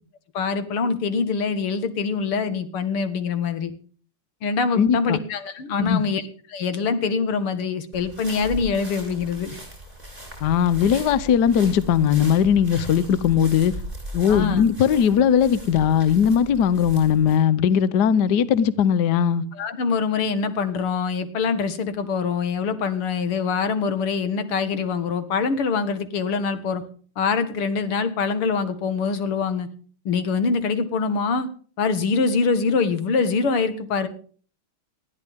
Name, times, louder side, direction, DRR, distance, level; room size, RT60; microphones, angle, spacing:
voice 1, 0.3-3.7 4.4-6.2 6.5-9.6 14.3-14.6 19.5-26.8 27.2-29.7 30.1-31.5 31.8-34.1, left 5 dB, 85° left, 2.5 m, -24 dB
voice 2, 4.7-5.2 5.8-6.0 10.4-13.7 14.1-19.4, left 8 dB, 60° left, 1.3 m, -19 dB
sound 1, 7.9-17.4, equal, 20° right, 6.8 m, -38 dB
20.0 x 14.0 x 3.6 m
omnidirectional pair, 2.4 m